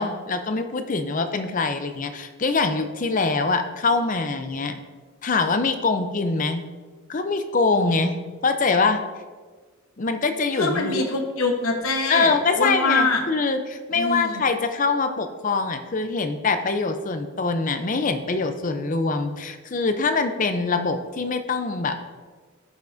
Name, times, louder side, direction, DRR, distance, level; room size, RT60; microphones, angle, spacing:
voice 1, 0.0-4.8 5.2-6.6 7.1-8.2 8.4-9.0 10.0-11.0 12.1-22.0, left 4 dB, 35° left, 8 dB, 0.5 m, -24 dB
voice 2, 10.6-13.2 13.9-14.4, left 3 dB, 75° left, 3 dB, 1.0 m, -24 dB
14.5 x 5.8 x 2.6 m, 1.4 s
head